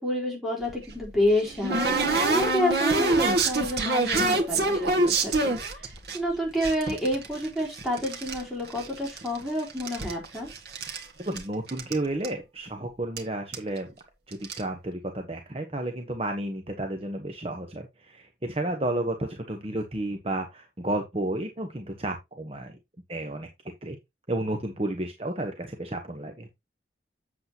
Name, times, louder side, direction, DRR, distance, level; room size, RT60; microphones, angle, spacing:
voice 1, 0.0-5.9 6.1-10.5, equal, ahead, 4.0 m, -29 dB
sound 1, 0.7-6.2 6.6-8.4 8.7-9.4 9.7-11.0 11.4-11.5 11.7-11.9 12.2-12.3 13.2-13.3 13.5-13.8 14.3-14.6, right 2 dB, 65° right, 1.9 m, -26 dB
voice 2, 11.3-13.9 14.3-22.8 23.1-23.5 23.8-24.0 24.3-26.5, right 1 dB, 35° right, 1.1 m, -32 dB
8.1 x 7.8 x 2.9 m
head